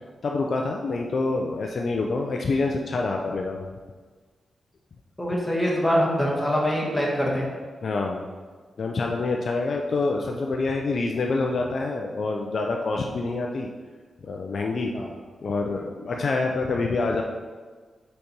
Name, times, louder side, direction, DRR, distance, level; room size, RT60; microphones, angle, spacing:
voice 1, 0.2-3.6 7.8-8.3 8.8-13.7 14.2-14.9 15.4-17.2, left 3 dB, 60° left, 1 dB, 0.5 m, -26 dB
voice 2, 5.2-7.5 14.9-15.1, equal, 15° left, -3 dB, 1.5 m, -24 dB
5.0 x 4.1 x 4.5 m, 1.5 s
cardioid pair, 70°, 0 cm